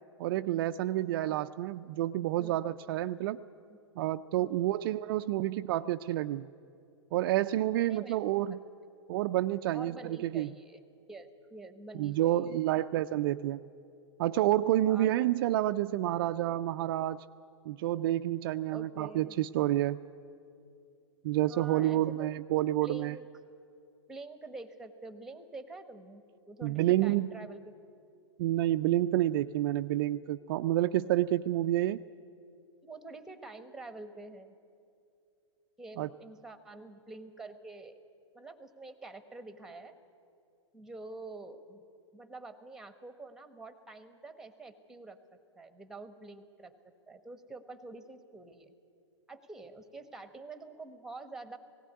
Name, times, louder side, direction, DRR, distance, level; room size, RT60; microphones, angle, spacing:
voice 1, 0.2-3.4 4.0-6.5 7.1-8.6 9.1-10.5 12.0-13.6 14.2-17.2 17.7-20.0 21.2-23.2 26.6-27.3 28.4-32.0 36.0-36.1, right 14 dB, 45° right, 10 dB, 0.4 m, -29 dB
voice 2, 4.4-4.7 7.9-8.2 9.7-10.8 11.1-12.5 14.8-15.2 18.7-19.4 21.5-22.3 22.8-23.2 24.1-27.7 32.8-34.5 35.8-38.0 38.3-40.0 40.7-41.8 42.1-48.7 49.3-51.6, right 3 dB, 5° right, 9 dB, 1.3 m, -47 dB
17.5 x 16.5 x 9.4 m, 2.5 s
hypercardioid pair, 120°, 16 cm